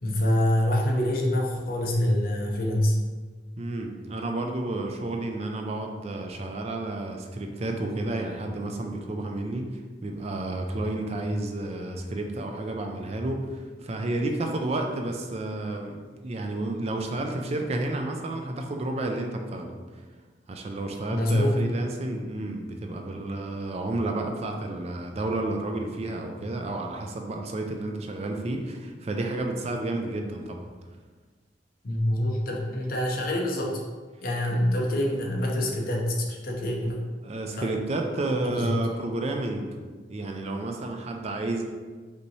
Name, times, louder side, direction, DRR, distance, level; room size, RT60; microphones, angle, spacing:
voice 1, 0.0-2.9 11.2-11.3 21.1-21.6 31.8-33.8 34.2-37.0 37.6-37.7 38.4-38.7, left 1 dB, 55° left, -1 dB, 0.8 m, -25 dB
voice 2, 3.6-19.7 20.5-30.7 34.5-34.6 37.2-39.7 40.1-41.6, right 2 dB, 35° right, 3 dB, 0.4 m, -31 dB
5.2 x 2.8 x 3.2 m, 1.4 s
head